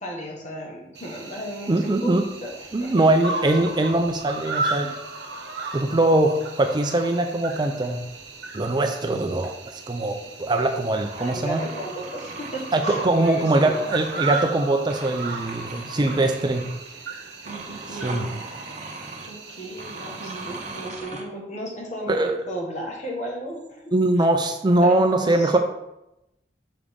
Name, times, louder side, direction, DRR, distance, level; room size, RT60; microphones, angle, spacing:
voice 1, 0.0-3.4 4.8-4.9 11.2-13.8 15.9-16.1 17.4-18.3 19.3-23.9 24.8-25.5, right 1 dB, 40° left, -1 dB, 1.6 m, -35 dB
Cricket, 1.0-20.9, right 3 dB, 70° right, 1.0 m, -35 dB
voice 2, 1.7-2.2 2.7-4.9 5.7-8.0 8.5-11.6 12.7-16.7 18.0-18.3 22.1-22.4 23.9-25.6, right 2 dB, 25° right, 6 dB, 0.4 m, -22 dB
sound 1, 2.3-3.1 3.3-4.4 5.8-6.3 8.0-8.2 8.9-9.1 9.5-9.6 10.5-14.6 14.9-17.0 17.4-19.3 19.8-21.2, right 3 dB, 45° right, 0.8 m, -40 dB
6.9 x 4.8 x 3.7 m, 0.90 s
head